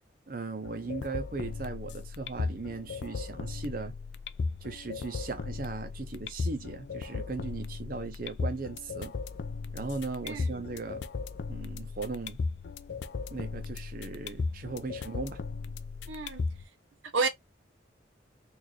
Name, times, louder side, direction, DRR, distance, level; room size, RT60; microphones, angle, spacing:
voice 1, 0.3-4.0 4.6-9.1 9.7-11.1 11.5-12.4 13.3-15.4, right 3 dB, 50° right, 0.7 m, -38 dB
sound 1, 0.6-16.6, left 4 dB, 65° left, 0.4 m, -37 dB
voice 2, 10.2-10.6 16.1-16.4 17.1-17.3, right 4 dB, 90° right, 0.8 m, -30 dB
4.1 x 2.6 x 3.1 m
head